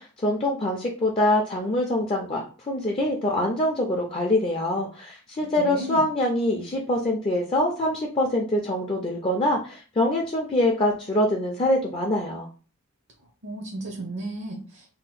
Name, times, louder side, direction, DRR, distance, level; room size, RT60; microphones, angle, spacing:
voice 1, 0.0-12.5, left 1 dB, 25° left, 0 dB, 0.4 m, -24 dB
voice 2, 5.6-6.1 13.4-14.9, right 2 dB, 55° right, 2 dB, 0.6 m, -34 dB
2.8 x 2.1 x 4.0 m, 0.37 s
head